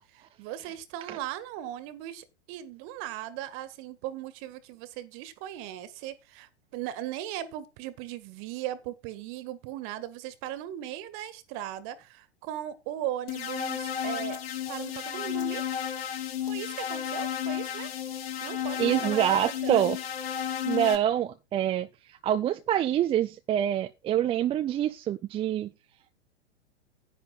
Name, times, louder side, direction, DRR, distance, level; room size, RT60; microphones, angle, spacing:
voice 1, 0.0-14.4 14.7-15.6 16.5-17.9 18.4-19.8, right 12 dB, 40° right, 1.8 m, -38 dB
sound 1, 13.3-21.0, left 9 dB, 60° left, 2.5 m, -32 dB
voice 2, 18.8-20.0 20.6-25.7, right 11 dB, 15° right, 0.5 m, -26 dB
10.5 x 9.6 x 4.0 m
figure-of-eight pair, 105°, 34 cm